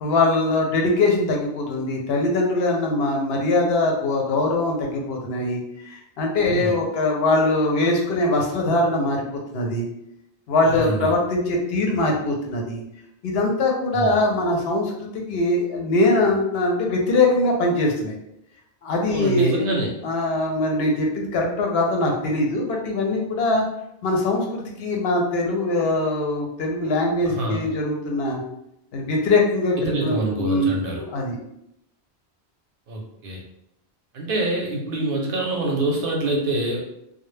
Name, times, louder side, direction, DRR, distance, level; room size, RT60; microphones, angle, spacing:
voice 1, 0.0-9.2 9.5-9.9 10.5-12.8 13.2-18.1 18.8-23.7 24.0-28.4 28.9-31.4, left 2 dB, 70° left, 0 dB, 0.8 m, -22 dB
voice 2, 10.7-11.1 13.9-14.2 19.1-19.9 27.3-27.6 29.9-31.0 32.9-33.4 34.1-36.8, right 2 dB, 65° right, -1 dB, 0.7 m, -25 dB
2.2 x 2.0 x 3.1 m, 0.79 s
omnidirectional pair, 1.1 m